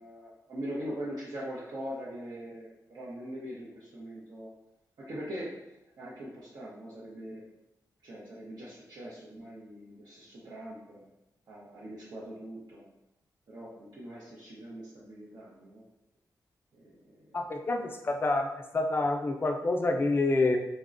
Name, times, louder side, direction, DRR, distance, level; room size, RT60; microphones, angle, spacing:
voice 1, 0.0-4.5 5.0-5.6 6.0-7.4 8.0-11.1 11.5-12.9 13.5-15.8 16.7-17.4, equal, 65° right, -8 dB, 0.6 m, -42 dB
voice 2, 17.3-18.5 18.7-20.6, left 2 dB, 30° left, 4 dB, 0.3 m, -27 dB
3.9 x 2.1 x 2.4 m, 0.92 s
wide cardioid pair, 115°, 7 cm